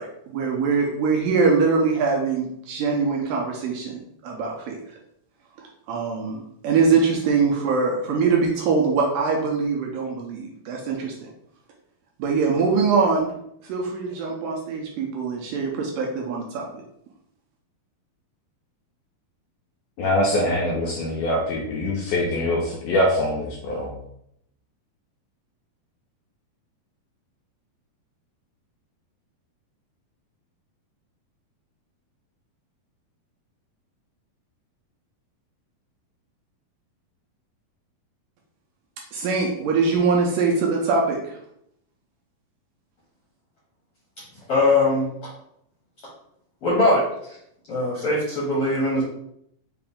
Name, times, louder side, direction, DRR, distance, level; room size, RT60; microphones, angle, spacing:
voice 1, 0.0-4.9 5.6-11.3 12.2-13.3 13.6-16.7 39.1-41.4, right 4 dB, 80° right, -1 dB, 2.1 m, -23 dB
voice 2, 20.0-24.0, left 1 dB, 85° left, -2 dB, 1.8 m, -23 dB
voice 3, 44.5-45.1 46.6-47.0 47.7-49.0, left 2 dB, 65° left, -7 dB, 1.4 m, -20 dB
5.8 x 2.6 x 3.5 m, 0.74 s
omnidirectional pair, 4.3 m